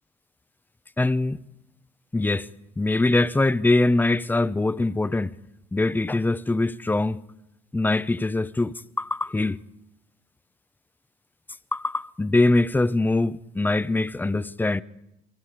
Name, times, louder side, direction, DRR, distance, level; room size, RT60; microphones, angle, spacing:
voice 1, 1.0-1.4 2.1-2.5 2.8-5.3 5.7-7.2 7.7-9.6 11.7-14.8, left 2 dB, 10° left, 0.7 m, -23 dB
30.0 x 22.5 x 5.0 m
supercardioid pair, 85°, 20 cm